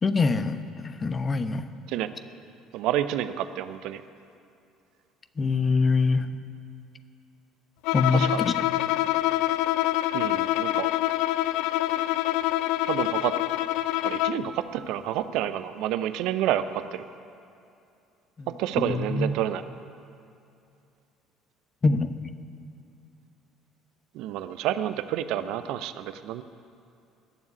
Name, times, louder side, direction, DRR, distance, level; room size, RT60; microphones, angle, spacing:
voice 1, 0.0-1.7 5.4-6.3 7.9-8.6 18.4-18.5 18.8-19.4 21.8-22.3, left 4 dB, 30° left, 11 dB, 1.0 m, -24 dB
voice 2, 2.7-4.0 8.1-8.4 10.1-10.9 12.9-13.3 14.0-17.0 18.6-19.6 24.1-26.4, right 12 dB, 65° right, 12 dB, 0.7 m, -29 dB
Bowed string instrument, 7.8-14.5, left 15 dB, 65° left, 0.4 m, -26 dB
20.0 x 7.2 x 9.6 m, 2.6 s
hypercardioid pair, 60°, 0 cm